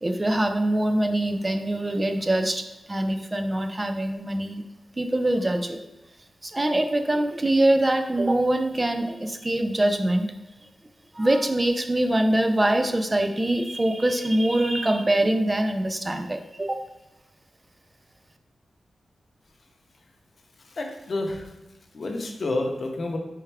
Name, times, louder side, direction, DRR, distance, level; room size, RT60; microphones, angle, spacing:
voice 1, 0.0-4.6 5.0-5.8 6.4-10.3 10.6-10.7 11.1-16.8, right 1 dB, 20° right, 6 dB, 0.4 m, -24 dB
voice 2, 20.7-21.5 21.9-23.2, left 2 dB, 50° left, 2 dB, 0.7 m, -29 dB
4.4 x 3.5 x 3.3 m, 1.0 s
wide cardioid pair, 95°, 0 cm